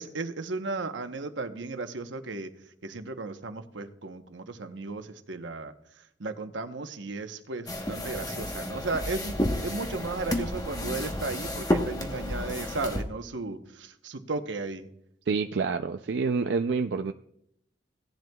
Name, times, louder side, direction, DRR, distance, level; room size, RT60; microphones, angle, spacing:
voice 1, 0.0-9.4 9.6-14.9, right 3 dB, 90° right, 8 dB, 0.9 m, -35 dB
sound 1, 7.7-13.0, left 1 dB, 20° left, 1.1 m, -31 dB
voice 2, 15.3-17.1, right 4 dB, 70° right, 7 dB, 0.4 m, -27 dB
17.0 x 10.5 x 2.3 m, 0.74 s
head